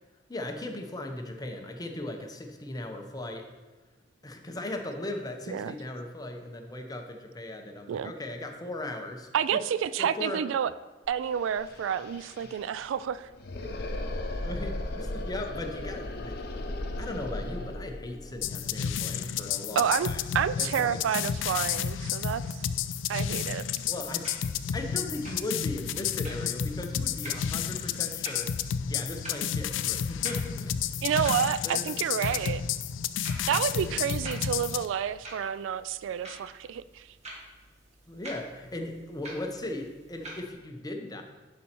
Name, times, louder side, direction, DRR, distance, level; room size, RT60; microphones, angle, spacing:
voice 1, 0.3-3.5 4.2-9.6 10.0-10.5 14.4-16.4 17.0-20.2 20.6-21.0 23.9-24.3 24.7-28.5 28.8-30.8 31.6-32.0 32.3-32.6 33.7-34.0 38.1-41.2, left 1 dB, 20° left, 4 dB, 0.8 m, -38 dB
voice 2, 9.3-10.7 11.1-13.3 19.8-20.1 20.3-22.4 23.1-23.6 31.0-32.6 33.5-37.1, right 8 dB, 85° right, 17 dB, 0.3 m, -29 dB
sound 1, 11.1-11.2 11.4-20.2, left 1 dB, 55° left, 0.8 m, -37 dB
sound 2, 18.4-34.9, left 8 dB, 80° left, 0.4 m, -31 dB
sound 3, 23.8-40.5, right 1 dB, 35° right, 1.6 m, -48 dB
10.5 x 4.2 x 4.4 m, 1.2 s
head